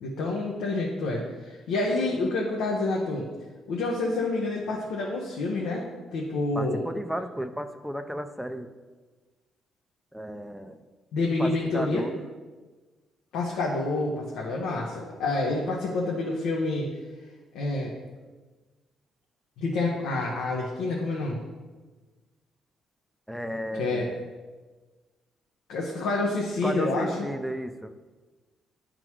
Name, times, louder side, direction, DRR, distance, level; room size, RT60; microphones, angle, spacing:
voice 1, 0.0-3.3 3.7-5.8 6.1-6.8 11.1-12.0 13.3-16.9 17.5-17.9 19.6-21.4 23.8-24.1 25.7-27.3, left 2 dB, 90° left, -3 dB, 1.0 m, -28 dB
voice 2, 6.5-8.7 10.1-10.8 11.4-12.1 23.3-24.2 26.6-27.9, equal, ahead, 7 dB, 0.5 m, -33 dB
9.7 x 3.9 x 4.6 m, 1.3 s
cardioid pair, 90°, 0 cm